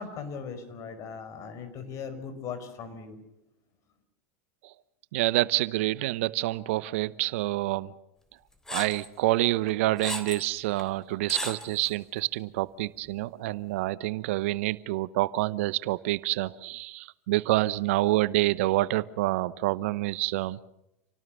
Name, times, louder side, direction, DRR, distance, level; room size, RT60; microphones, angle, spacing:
voice 1, 0.0-3.2, left 6 dB, 45° left, 5.2 m, -39 dB
voice 2, 5.1-7.9 8.7-20.6, right 17 dB, 65° right, 0.9 m, -27 dB
sound 1, 8.7-9.1 9.7-10.5 10.8-10.9 11.3-11.9, left 1 dB, 5° left, 3.5 m, -35 dB
28.0 x 18.5 x 6.6 m
hypercardioid pair, 90°, 7 cm